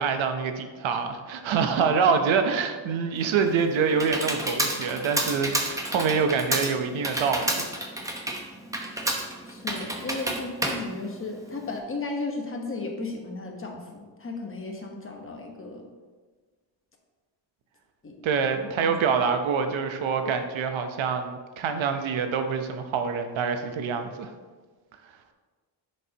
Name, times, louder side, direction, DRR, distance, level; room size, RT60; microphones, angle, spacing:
voice 1, 0.0-7.6 18.2-24.3, right 6 dB, 80° right, 7 dB, 0.9 m, -26 dB
Computer keyboard, 3.2-11.8, right 1 dB, 5° right, 0.8 m, -30 dB
voice 2, 9.5-15.9 18.0-18.2 18.5-19.3 20.2-20.4, left 3 dB, 25° left, 2 dB, 1.1 m, -35 dB
10.5 x 6.5 x 2.9 m, 1.4 s
wide cardioid pair, 155°, 46 cm